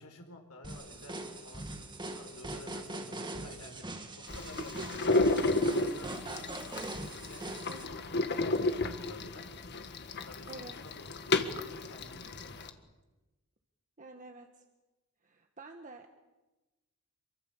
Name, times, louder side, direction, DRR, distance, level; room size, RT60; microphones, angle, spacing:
voice 1, 0.0-3.8 4.2-5.4 5.7-6.8 7.1-9.4 10.2-12.7, left 2 dB, 90° left, 3 dB, 4.6 m, -52 dB
sound 1, 0.6-7.9, right 2 dB, 20° right, 2.1 m, -42 dB
sound 2, 4.3-12.7, left 2 dB, 50° left, 1.8 m, -32 dB
voice 2, 7.7-8.0 10.5-10.8 14.0-14.6 15.2-16.1, right 2 dB, 35° right, 4 dB, 1.7 m, -47 dB
27.5 x 24.0 x 7.4 m, 1.1 s
head